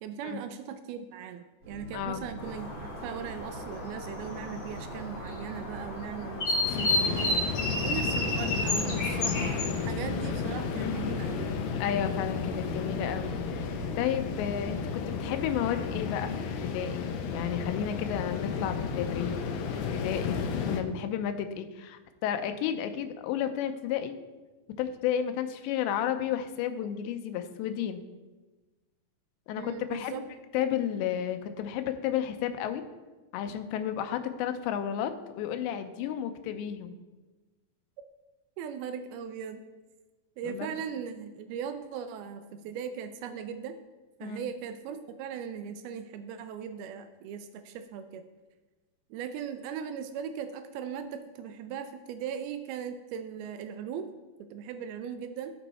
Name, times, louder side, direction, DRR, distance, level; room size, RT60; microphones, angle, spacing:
voice 1, 0.0-7.5 7.8-11.5 29.6-30.2 38.6-39.6 40.4-43.8 44.2-48.2 49.1-54.1 54.5-55.5, right 7 dB, 85° right, 9 dB, 2.2 m, -38 dB
sound 1, 1.6-14.8, right 2 dB, 30° right, 2.0 m, -45 dB
voice 2, 1.9-2.2 10.8-11.1 11.8-16.3 16.6-19.3 19.7-24.1 24.8-28.0 29.5-30.3 30.5-32.8 33.3-36.9 40.4-40.7 44.2-44.4, left 9 dB, 90° left, 8 dB, 3.0 m, -32 dB
sound 2, 2.4-9.6, left 2 dB, 40° left, 3.4 m, -32 dB
sound 3, 6.6-20.8, left 5 dB, 75° left, 2.3 m, -33 dB
16.0 x 5.5 x 4.2 m, 1.2 s
omnidirectional pair, 4.9 m